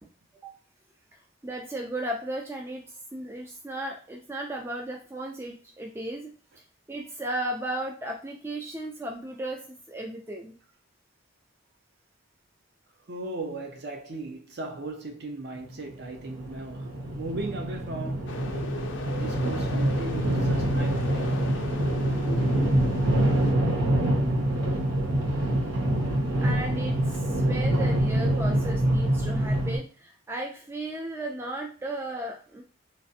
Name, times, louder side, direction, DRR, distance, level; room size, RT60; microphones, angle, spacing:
voice 1, 1.4-6.3 6.9-10.6 26.4-32.6, right 1 dB, 10° right, 0.3 m, -35 dB
voice 2, 13.1-18.4 19.2-21.4, right 2 dB, 55° right, 0.6 m, -37 dB
sound 1, 15.6-29.8, right 1 dB, 90° right, 0.9 m, -25 dB
sound 2, 18.3-23.5, left 3 dB, 65° left, 0.4 m, -37 dB
3.2 x 2.4 x 2.7 m
head